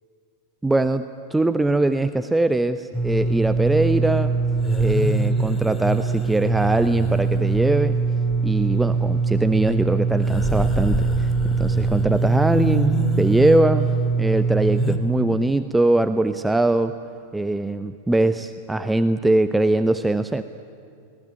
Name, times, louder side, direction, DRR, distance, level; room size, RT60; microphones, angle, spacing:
voice 1, 0.6-1.1 1.3-4.3 4.8-8.0 8.4-11.3 11.6-13.9 14.2-16.9 17.3-20.4, right 2 dB, 5° right, 10 dB, 0.6 m, -21 dB
sound 1, 2.9-15.0, right 3 dB, 15° left, 1.9 m, -22 dB
23.5 x 19.0 x 9.4 m, 2.4 s
figure-of-eight pair, 90°, 0 cm